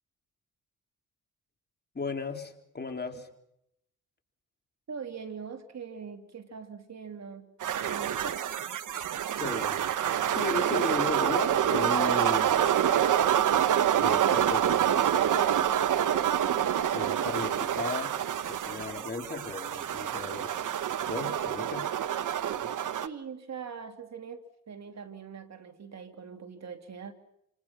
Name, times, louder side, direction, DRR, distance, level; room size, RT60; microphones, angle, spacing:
voice 1, 1.9-3.3 9.4-9.9 10.3-12.6 14.0-15.2 16.9-20.6 21.1-21.9 22.6-22.7, left 3 dB, 30° left, 3.9 m, -36 dB
voice 2, 4.9-8.5 23.0-27.1, right 6 dB, 55° right, 3.1 m, -42 dB
sound 1, 7.6-23.1, right 10 dB, 70° right, 1.3 m, -27 dB
28.5 x 27.0 x 6.0 m
cardioid pair, 75°, 32 cm